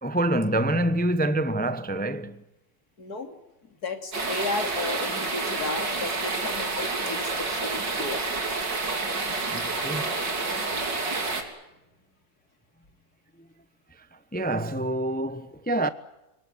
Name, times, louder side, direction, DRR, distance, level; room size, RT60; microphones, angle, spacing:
voice 1, 0.0-2.4 9.5-10.1 14.3-15.9, right 1 dB, 10° left, 0.6 m, -26 dB
voice 2, 3.0-3.4 3.8-8.2 8.9-9.0 9.7-10.0 11.2-11.4, left 3 dB, 60° left, 3.5 m, -34 dB
sound 1, 4.1-11.4, right 3 dB, 85° right, 4.0 m, -29 dB
27.0 x 18.5 x 9.5 m
omnidirectional pair, 1.9 m